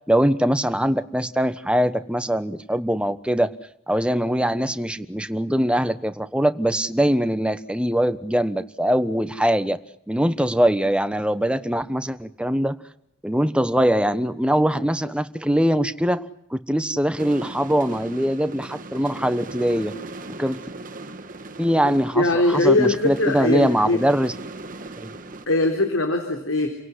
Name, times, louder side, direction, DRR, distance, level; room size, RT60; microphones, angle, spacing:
voice 1, 0.1-3.5 3.9-9.8 10.1-12.8 13.2-19.9 20.4-20.6 21.6-24.3 25.0-25.1, equal, 5° right, 10 dB, 1.1 m, -22 dB
sound 1, 17.2-25.5, right 2 dB, 40° right, 1.9 m, -38 dB
voice 2, 22.1-24.0 25.5-26.7, left 2 dB, 85° left, 4 dB, 3.8 m, -21 dB
29.5 x 18.0 x 9.8 m, 0.77 s
head